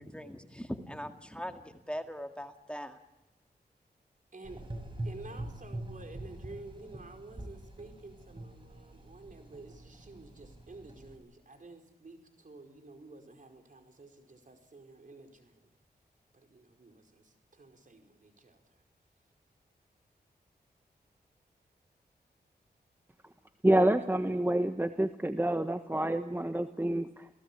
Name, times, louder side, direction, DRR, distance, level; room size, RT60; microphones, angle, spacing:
voice 1, 0.0-3.0, equal, 5° left, 6 dB, 2.0 m, -41 dB
voice 2, 4.3-4.7 5.0-15.7 16.3-18.8, right 3 dB, 50° right, 5 dB, 5.0 m, -51 dB
Gurgling / Engine, 4.4-11.2, right 1 dB, 30° right, 7.7 m, -44 dB
voice 3, 23.6-27.3, right 1 dB, 10° right, 8 dB, 1.3 m, -28 dB
29.5 x 17.5 x 8.8 m, 1.0 s
cardioid pair, 65°, 17 cm